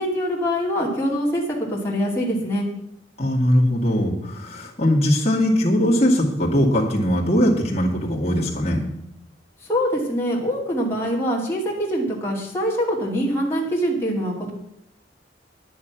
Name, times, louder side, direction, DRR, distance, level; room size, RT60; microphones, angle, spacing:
voice 1, 0.0-2.7 9.6-14.5, equal, 15° left, -5 dB, 2.6 m, -24 dB
voice 2, 3.2-8.8, equal, 35° left, -3 dB, 2.3 m, -20 dB
10.0 x 9.5 x 6.0 m, 0.78 s
head